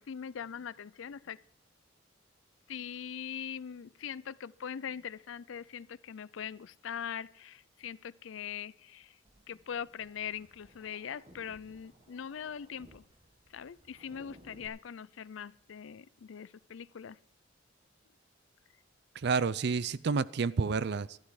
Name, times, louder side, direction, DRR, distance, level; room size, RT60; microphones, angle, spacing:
voice 1, 0.0-1.4 2.7-9.2 9.5-13.0 13.5-17.2, left 8 dB, 80° left, 0.4 m, -42 dB
sound 1, 9.2-14.7, right 1 dB, 30° right, 1.6 m, -60 dB
voice 2, 19.2-21.2, right 5 dB, 60° right, 0.5 m, -30 dB
13.0 x 12.0 x 4.9 m
head